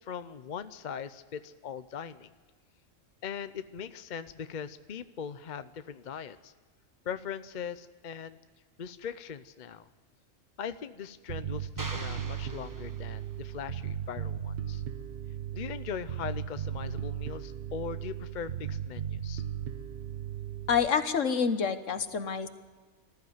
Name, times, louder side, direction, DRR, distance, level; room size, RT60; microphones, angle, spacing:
voice 1, 0.0-2.3 3.2-6.5 7.0-8.4 8.8-9.9 10.6-14.8 15.5-19.4, left 7 dB, 45° left, 12 dB, 0.7 m, -40 dB
Bass guitar, 11.3-20.9, right 9 dB, 50° right, 1.1 m, -36 dB
sound 1, 11.8-13.5, right 2 dB, 15° right, 0.9 m, -43 dB
voice 2, 20.7-22.5, left 6 dB, 70° left, 10 dB, 1.5 m, -27 dB
20.0 x 14.5 x 9.4 m, 1.4 s
omnidirectional pair, 1.4 m